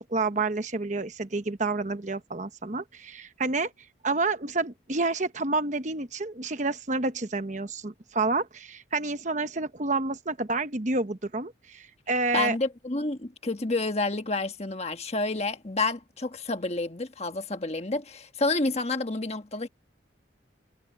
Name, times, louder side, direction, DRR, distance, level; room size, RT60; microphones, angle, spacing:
voice 1, 0.1-3.7 4.0-12.6, right 3 dB, 40° right, 1.1 m, -29 dB
voice 2, 12.3-19.7, left 3 dB, 35° left, 1.4 m, -29 dB
head